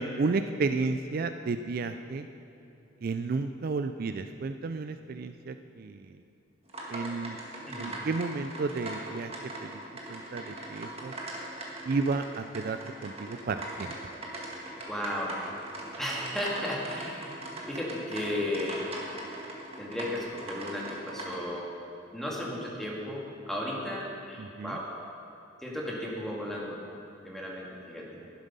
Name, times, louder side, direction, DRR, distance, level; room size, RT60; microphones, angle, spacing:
voice 1, 0.0-2.3 3.0-6.2 6.9-7.4 7.8-9.8 10.1-11.1 11.9-14.0 24.4-24.8, right 4 dB, 50° right, 9 dB, 0.4 m, -32 dB
sound 1, 6.7-21.4, right 1 dB, 30° right, 1.8 m, -41 dB
voice 2, 14.9-15.4 16.0-17.3 17.7-18.9 19.8-21.7 22.1-24.9 25.6-26.8 27.2-28.1, left 1 dB, ahead, -4 dB, 1.9 m, -34 dB
11.5 x 11.0 x 5.5 m, 2.9 s
head